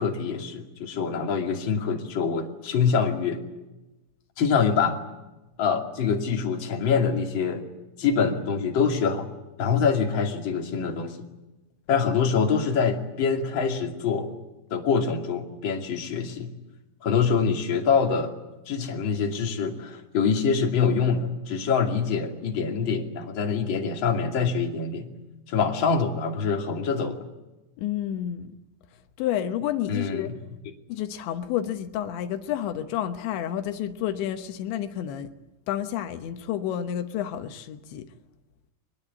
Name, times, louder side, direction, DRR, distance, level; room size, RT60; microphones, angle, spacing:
voice 1, 0.0-3.4 4.4-5.0 5.6-7.6 8.0-9.3 9.6-11.2 11.9-14.3 14.7-16.5 17.0-18.3 18.7-25.1 25.5-27.2 29.9-30.3, left 6 dB, 35° left, 2.3 m, -25 dB
voice 2, 27.8-28.5 29.2-30.3 30.9-35.3 35.7-38.1, left 11 dB, 75° left, 3.3 m, -30 dB
23.0 x 21.0 x 9.4 m
omnidirectional pair, 5.4 m